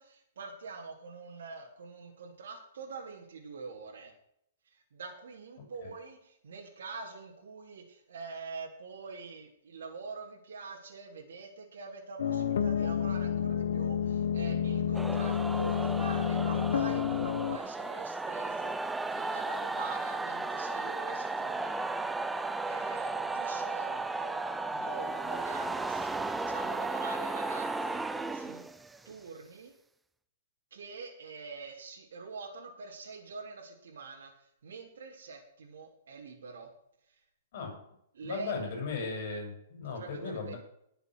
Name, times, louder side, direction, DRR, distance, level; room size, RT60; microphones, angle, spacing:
voice 1, 0.0-4.1 4.6-24.4 24.7-28.6 29.0-29.7 30.7-36.7 37.1-37.2 38.1-38.5 39.8-40.5, right 4 dB, 80° right, -2 dB, 3.4 m, -45 dB
sound 1, 12.2-17.6, left 8 dB, 70° left, 1.0 m, -30 dB
sound 2, 14.9-29.1, right 3 dB, 5° right, 0.4 m, -35 dB
voice 2, 38.2-40.6, left 4 dB, 40° left, 2 dB, 6.5 m, -36 dB
20.0 x 7.0 x 6.2 m, 0.73 s
hypercardioid pair, 175°, 0 cm